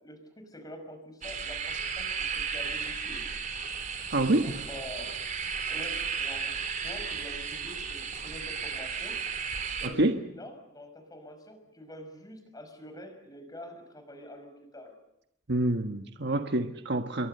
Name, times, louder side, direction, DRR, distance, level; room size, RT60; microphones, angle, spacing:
voice 1, 0.0-3.2 4.3-5.1 5.7-6.5 6.8-9.2 9.8-14.9, left 1 dB, 20° left, 7 dB, 5.7 m, -46 dB
sound 1, 1.2-9.9, right 6 dB, 40° right, 3.5 m, -34 dB
voice 2, 4.1-4.6 9.8-10.2 15.5-17.3, right 1 dB, 55° right, 6 dB, 1.4 m, -27 dB
29.0 x 23.0 x 6.7 m, 0.81 s
head